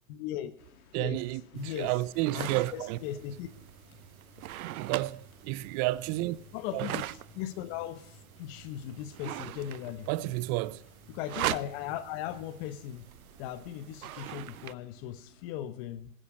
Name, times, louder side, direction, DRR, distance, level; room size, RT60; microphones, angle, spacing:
voice 1, 0.1-0.5 1.0-1.2 1.5-1.9 2.3-3.5 6.5-7.1 7.3-10.1 11.1-13.1 13.4-16.1, left 11 dB, 45° left, 1.2 m, -38 dB
sound 1, 0.6-15.5, left 5 dB, 85° left, 3.1 m, -61 dB
voice 2, 0.9-3.0 4.8-6.4 6.7-6.9 10.1-10.8, right 18 dB, 30° right, 0.4 m, -31 dB
sound 2, 1.6-14.7, right 14 dB, 85° right, 0.7 m, -41 dB
sound 3, 2.3-12.7, right 2 dB, 5° right, 3.3 m, -58 dB
15.5 x 9.9 x 6.4 m
hypercardioid pair, 135°, 42 cm